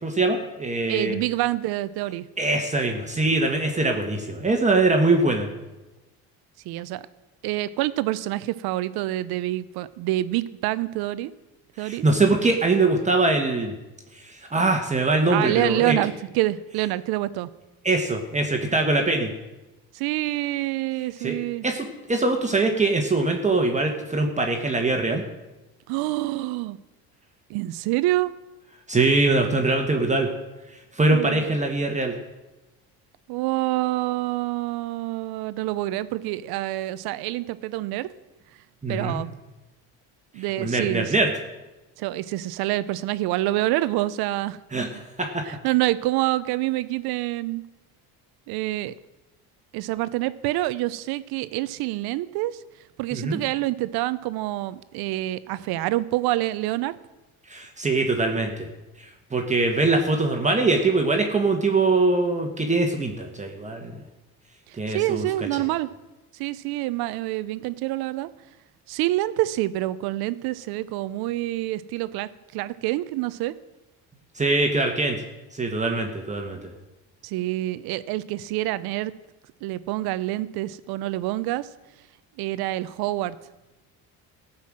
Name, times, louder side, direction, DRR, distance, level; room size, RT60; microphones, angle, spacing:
voice 1, 0.0-1.2 2.4-5.5 11.8-13.8 14.1-16.0 17.8-19.3 21.2-21.4 21.6-25.2 28.9-30.3 30.7-32.1 38.8-39.2 40.6-41.3 44.7-44.9 45.2-45.4 53.1-53.4 57.5-58.7 59.0-64.0 64.8-65.5 74.3-75.2 75.5-76.7, right 2 dB, 20° right, 3 dB, 1.4 m, -23 dB
voice 2, 0.9-2.3 6.6-7.1 7.4-11.3 11.8-12.0 15.3-17.5 19.9-21.6 25.9-26.8 27.5-28.3 31.1-31.4 33.3-38.1 38.9-39.3 40.3-41.1 42.0-44.6 45.5-47.6 48.5-48.9 49.7-52.6 53.0-57.0 64.7-65.9 66.3-68.3 68.9-73.5 77.2-79.1 79.6-81.7 82.4-83.4, right 16 dB, 75° right, 16 dB, 0.7 m, -27 dB
15.0 x 5.7 x 7.7 m, 1.1 s
supercardioid pair, 95°, 38 cm